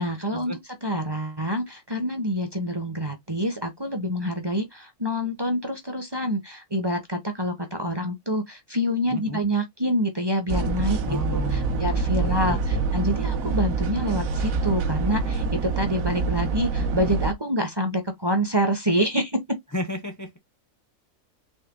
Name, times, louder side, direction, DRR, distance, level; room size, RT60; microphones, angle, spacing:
voice 1, 0.0-19.4, equal, 20° right, 0.7 m, -27 dB
sound 1, 10.5-17.3, right 4 dB, 65° right, 1.2 m, -26 dB
voice 2, 11.1-11.9 12.2-12.8 19.7-20.4, left 1 dB, 25° left, 0.4 m, -33 dB
4.1 x 3.2 x 3.7 m
omnidirectional pair, 1.6 m